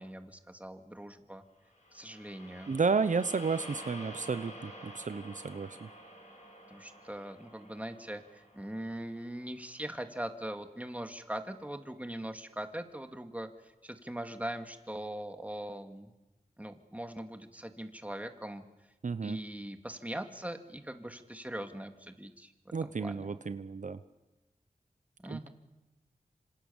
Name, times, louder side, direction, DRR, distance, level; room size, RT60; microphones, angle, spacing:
voice 1, 0.0-1.4 1.9-2.8 6.7-16.1 16.6-18.6 19.2-22.5 22.8-23.3 25.2-25.5, right 1 dB, 10° right, 7 dB, 2.5 m, -41 dB
sound 1, 1.7-10.0, equal, 55° left, 6.7 m, -50 dB
voice 2, 2.7-5.9 19.0-19.4 22.7-24.0 25.3-25.5, right 5 dB, 60° right, 12 dB, 0.9 m, -32 dB
26.5 x 26.5 x 7.3 m, 1.1 s
wide cardioid pair, 65°, 14 cm